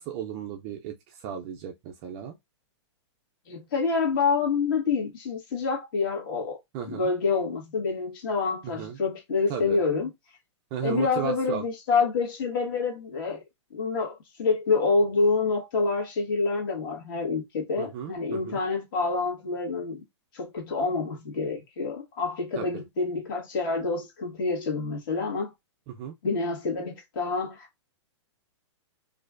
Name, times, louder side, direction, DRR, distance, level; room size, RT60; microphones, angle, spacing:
voice 1, 0.0-2.4 6.7-7.1 8.6-9.0 9.5-9.8 10.7-11.6 17.8-18.6 22.6-22.7 25.9-26.1, right 8 dB, 20° right, 0.3 m, -35 dB
voice 2, 3.5-6.6 6.9-10.1 10.8-13.4 13.7-20.0 20.3-25.5 26.2-27.7, left 4 dB, 45° left, 1.6 m, -27 dB
4.3 x 2.5 x 2.4 m
hypercardioid pair, 160°, 16 cm